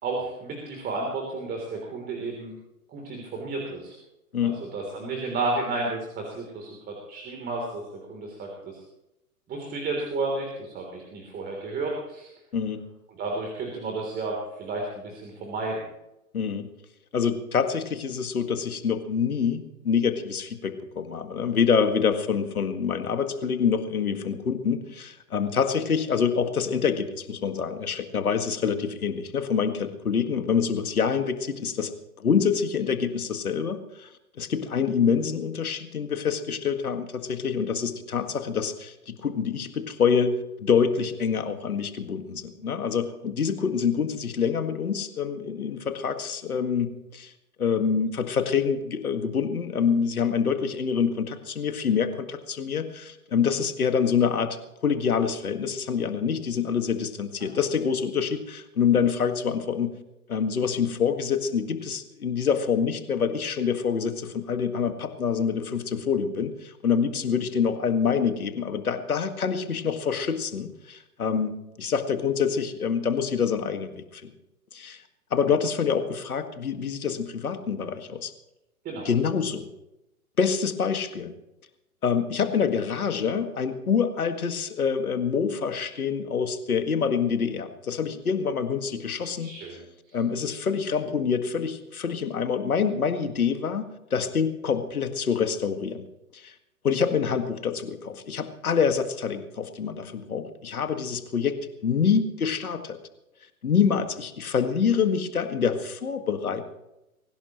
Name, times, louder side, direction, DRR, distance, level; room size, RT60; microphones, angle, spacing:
voice 1, 0.0-2.5 2.9-4.0 4.4-7.8 8.1-8.8 9.5-12.3 13.2-15.9 57.4-57.5 78.9-79.1 89.4-90.2, right 3 dB, 20° right, 0 dB, 3.4 m, -32 dB
voice 2, 4.3-4.7 12.5-12.8 16.3-16.7 17.1-31.9 32.2-34.1 34.4-47.3 47.6-54.6 54.8-60.0 60.3-74.3 74.7-75.0 75.3-78.3 79.1-79.7 80.4-81.3 82.0-89.5 90.1-96.1 96.3-96.5 96.8-103.0 103.6-106.6, left 6 dB, 75° left, 8 dB, 2.0 m, -26 dB
23.0 x 17.0 x 3.1 m, 0.92 s
figure-of-eight pair, 115°, 44 cm